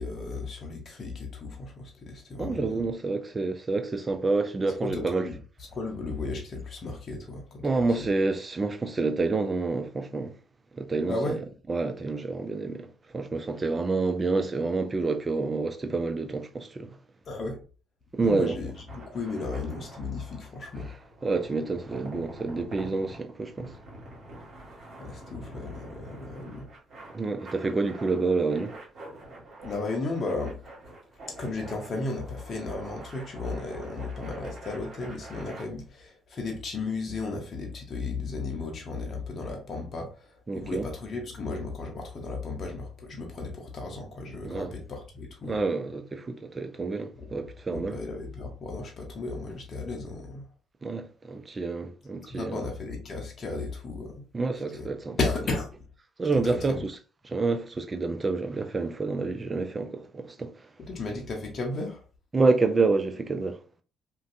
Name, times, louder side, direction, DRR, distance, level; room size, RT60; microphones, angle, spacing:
voice 1, 0.0-2.8 4.8-7.7 8.0-8.1 11.1-11.4 17.3-17.6 18.2-20.9 25.0-26.7 29.6-30.6 31.3-45.6 47.2-47.3 47.7-50.5 52.3-54.2 54.7-54.9 55.2-55.7 56.3-56.8 60.8-62.0, left 3 dB, 50° left, 0.7 m, -34 dB
voice 2, 2.4-5.3 7.6-10.3 10.8-11.4 11.7-12.9 13.1-16.9 18.1-18.6 21.2-23.7 27.1-28.7 40.5-40.9 44.4-44.7 45.4-48.0 50.8-52.6 54.3-55.2 56.2-56.8 57.3-60.5 62.3-63.6, right 3 dB, 30° right, 0.5 m, -28 dB
sound 1, 18.6-35.6, right 1 dB, 55° right, 1.3 m, -46 dB
2.6 x 2.2 x 2.5 m
hypercardioid pair, 50°, 0 cm